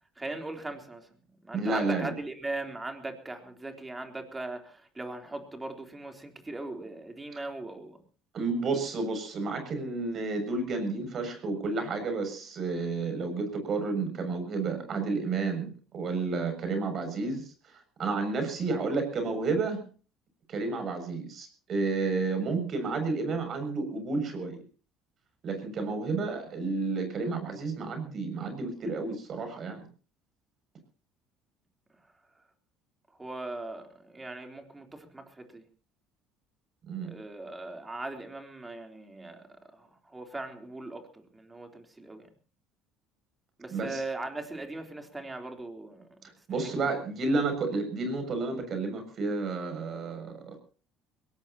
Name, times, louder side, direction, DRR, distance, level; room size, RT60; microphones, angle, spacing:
voice 1, 0.2-1.1 1.4-8.0 33.2-35.6 37.0-42.3 43.6-46.1 46.6-46.7, right 2 dB, 15° right, 3.7 m, -39 dB
voice 2, 1.5-2.1 8.3-17.5 18.0-19.8 20.5-24.6 25.4-29.8 36.8-37.1 43.7-44.0 46.2-50.6, right 3 dB, 50° right, 7.0 m, -31 dB
22.0 x 18.5 x 3.0 m
supercardioid pair, 85°, 0 cm